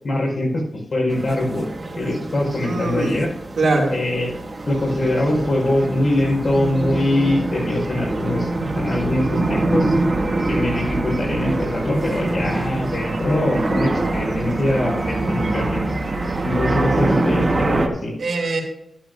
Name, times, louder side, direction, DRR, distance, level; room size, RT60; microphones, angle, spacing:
voice 1, 0.0-1.7 2.0-3.3 3.9-4.3 4.7-9.9 10.5-15.8 16.4-18.1, left 1 dB, 45° left, -2 dB, 4.5 m, -22 dB
sound 1, 1.1-17.9, right 2 dB, 30° right, 1.1 m, -24 dB
voice 2, 2.6-3.2 3.6-3.9 18.2-18.6, right 2 dB, 65° right, -1 dB, 2.5 m, -21 dB
12.0 x 12.0 x 2.6 m, 0.81 s
wide cardioid pair, 175°, 0 cm